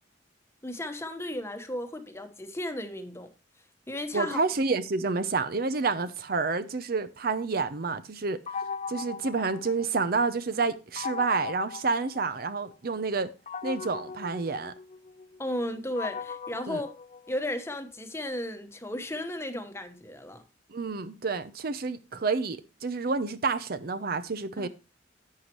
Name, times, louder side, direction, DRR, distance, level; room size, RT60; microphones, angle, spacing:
voice 1, 0.6-3.3 3.9-4.4 15.4-16.9 17.3-20.4 24.6-24.7, left 1 dB, 15° left, 1.1 m, -34 dB
voice 2, 4.1-8.4 8.9-13.3 13.6-14.7 16.7-16.8 20.7-24.7, right 4 dB, 50° right, 0.6 m, -29 dB
sound 1, 8.5-10.3 11.0-12.8 13.5-17.7, left 5 dB, 35° left, 0.5 m, -39 dB
11.0 x 8.1 x 3.0 m
head